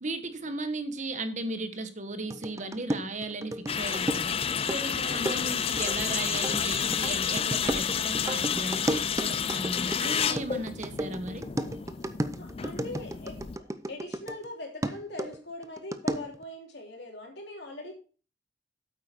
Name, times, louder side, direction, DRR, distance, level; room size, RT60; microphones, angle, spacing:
voice 1, 0.0-4.4 4.7-11.4, right 2 dB, 40° right, 9 dB, 1.1 m, -36 dB
sound 1, 2.3-14.5 14.8-16.4, right 1 dB, 15° right, 0.6 m, -34 dB
sound 2, 3.7-13.6, left 8 dB, 30° left, 0.3 m, -30 dB
voice 2, 4.9-5.4 12.4-13.4 13.8-17.9, left 1 dB, 60° left, 1 dB, 3.2 m, -41 dB
8.6 x 8.5 x 4.3 m, 0.37 s
head